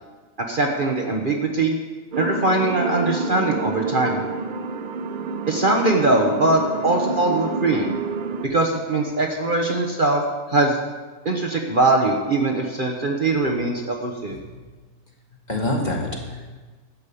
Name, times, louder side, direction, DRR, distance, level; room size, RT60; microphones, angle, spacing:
voice 1, 0.5-1.8 2.2-4.2 5.5-8.0 8.4-10.2 10.5-10.8 11.2-14.4, right 2 dB, 40° right, 1 dB, 1.1 m, -21 dB
sound 1, 2.1-8.5, right 4 dB, 65° right, 0.5 m, -28 dB
voice 2, 14.3-14.9 15.5-16.6, left 1 dB, 30° left, -1 dB, 1.9 m, -28 dB
13.0 x 5.2 x 8.4 m, 1.3 s
omnidirectional pair, 1.5 m